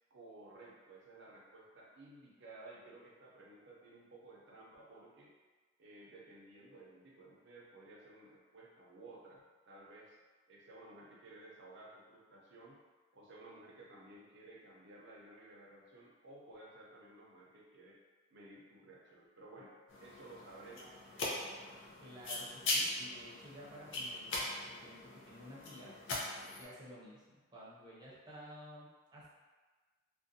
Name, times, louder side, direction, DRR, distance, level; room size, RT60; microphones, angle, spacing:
voice 1, 0.1-5.3 5.8-10.2 10.5-12.8 13.1-18.0 18.3-22.0, right 2 dB, 65° right, -3 dB, 0.6 m, -56 dB
sound 1, 19.9-26.6, left 2 dB, 65° left, 0.5 m, -40 dB
voice 2, 22.0-25.9 26.6-29.3, equal, 20° right, -7 dB, 0.7 m, -53 dB
2.4 x 2.1 x 2.6 m, 1.3 s
head